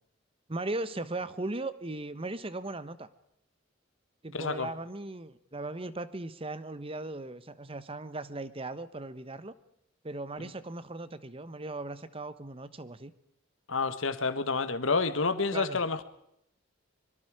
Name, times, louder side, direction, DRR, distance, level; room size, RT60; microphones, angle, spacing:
voice 1, 0.5-3.1 4.2-9.5 10.0-13.1 15.5-15.8, right 2 dB, 30° right, 1.1 m, -38 dB
voice 2, 4.3-4.7 10.4-10.5 13.7-16.0, left 4 dB, 85° left, 1.4 m, -29 dB
24.5 x 23.5 x 4.9 m
head